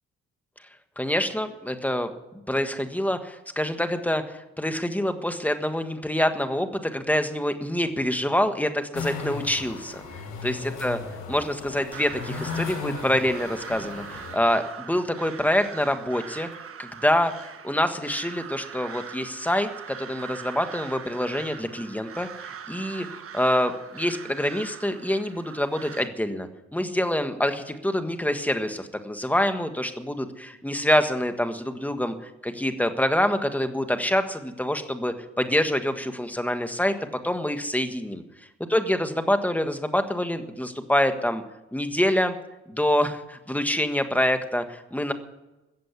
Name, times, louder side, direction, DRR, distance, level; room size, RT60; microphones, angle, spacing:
voice 1, 1.0-2.1 2.5-10.0 10.4-11.0 11.3-16.5 16.8-23.1 23.3-36.9 37.2-38.2 38.7-41.4 41.7-42.3 42.7-45.1, left 1 dB, 5° left, 8 dB, 1.5 m, -26 dB
sound 1, 8.9-14.4, left 4 dB, 80° left, 5.0 m, -36 dB
Crow, 11.9-26.1, right 7 dB, 50° right, 1.3 m, -42 dB
15.0 x 7.7 x 9.6 m, 1.0 s
cardioid pair, 90°, 30 cm